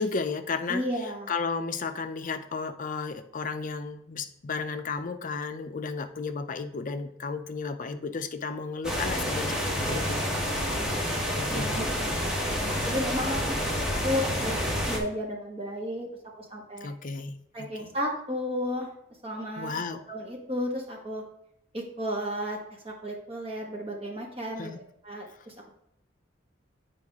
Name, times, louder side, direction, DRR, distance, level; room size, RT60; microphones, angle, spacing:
voice 1, 0.0-0.9 1.3-10.6 11.3-11.8 16.8-17.4 17.7-17.9 19.6-20.0 24.6-24.8, left 4 dB, 45° left, 8 dB, 0.5 m, -33 dB
voice 2, 0.7-1.3 11.5-12.4 12.8-13.5 14.0-14.5 14.9-16.1 16.4-16.9 17.5-18.9 19.2-19.7 20.1-21.2 21.7-22.6 22.8-25.7, equal, 30° right, -1 dB, 1.5 m, -33 dB
sound 1, 8.8-15.0, equal, 5° right, 1.2 m, -29 dB
8.0 x 4.9 x 3.6 m, 0.77 s
head